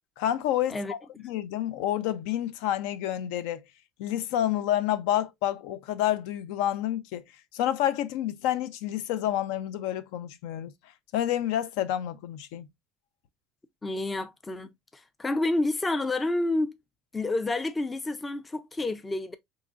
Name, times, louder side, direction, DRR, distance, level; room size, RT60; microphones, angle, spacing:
voice 1, 0.2-1.0 1.2-3.6 4.0-7.2 7.5-10.7 11.1-12.7, left 12 dB, 75° left, 0.5 m, -29 dB
voice 2, 13.8-16.8 17.1-19.4, left 2 dB, 10° left, 0.4 m, -29 dB
3.7 x 3.0 x 2.4 m
cardioid pair, 155°, 0 cm